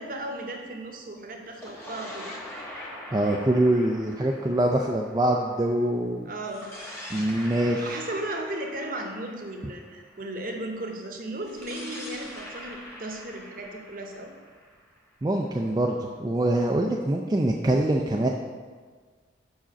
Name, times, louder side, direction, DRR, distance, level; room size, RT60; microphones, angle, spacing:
voice 1, 0.0-2.3 6.2-6.7 7.6-14.3, right 1 dB, 50° right, 2 dB, 0.8 m, -36 dB
sound 1, 1.4-5.9 6.4-10.4 11.4-15.2, equal, 15° left, 1.1 m, -43 dB
voice 2, 3.1-6.3 7.1-8.0 15.2-18.3, right 1 dB, 20° right, 0 dB, 0.3 m, -24 dB
5.1 x 4.9 x 5.7 m, 1.5 s
head